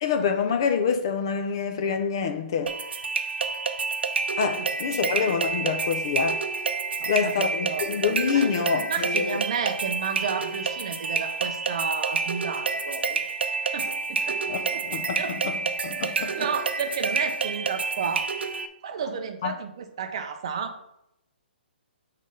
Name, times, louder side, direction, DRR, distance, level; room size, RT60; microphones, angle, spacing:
voice 1, 0.0-2.7 4.4-6.4 7.1-9.4 14.5-15.6 15.8-16.4 19.4-19.5, left 6 dB, 25° left, 0.4 m, -26 dB
sound 1, 2.7-18.7, right 4 dB, 80° right, 0.6 m, -29 dB
voice 2, 7.0-7.9 8.3-13.2 13.7-14.4 14.7-14.8 15.2-15.4 16.0-18.3 18.8-20.7, right 6 dB, 30° right, 0.5 m, -32 dB
5.5 x 3.2 x 5.3 m
hypercardioid pair, 180°, 6 cm